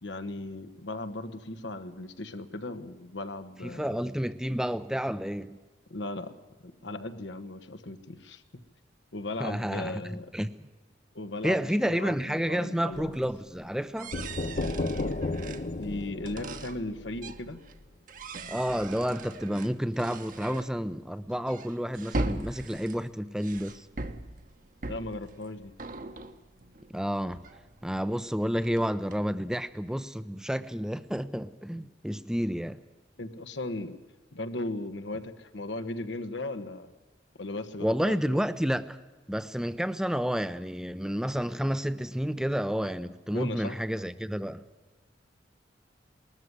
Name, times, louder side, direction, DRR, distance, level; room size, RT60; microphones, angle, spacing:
voice 1, 0.0-4.1 5.9-6.3 6.6-8.4 9.1-10.3 11.1-13.2 15.7-17.6 24.9-25.7 33.2-34.0 34.3-36.9 37.4-38.4 43.3-43.8, left 2 dB, 85° left, 1.4 m, -37 dB
voice 2, 3.6-5.6 9.4-10.5 11.4-14.1 18.5-23.9 26.9-27.4 27.8-32.8 37.8-39.0 39.3-44.6, equal, 5° right, 0.6 m, -30 dB
sound 1, 12.9-17.8 18.1-28.2 28.5-29.8, right 2 dB, 45° right, 1.1 m, -40 dB
sound 2, 14.1-17.9, left 2 dB, 45° left, 0.8 m, -33 dB
20.0 x 13.5 x 9.6 m
head